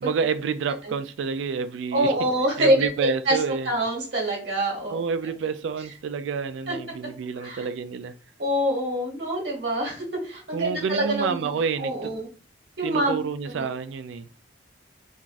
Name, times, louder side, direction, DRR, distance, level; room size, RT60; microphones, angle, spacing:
voice 1, 0.0-2.1 2.6-3.7 4.9-8.1 10.5-12.1 12.8-14.3, right 5 dB, 80° right, 0.3 m, -29 dB
voice 2, 1.9-3.4 3.6-5.0 6.7-6.8 7.4-7.6 8.4-11.5 11.8-12.3 12.8-13.2 13.5-13.6, right 1 dB, 60° right, 1.2 m, -25 dB
3.0 x 2.4 x 2.5 m
head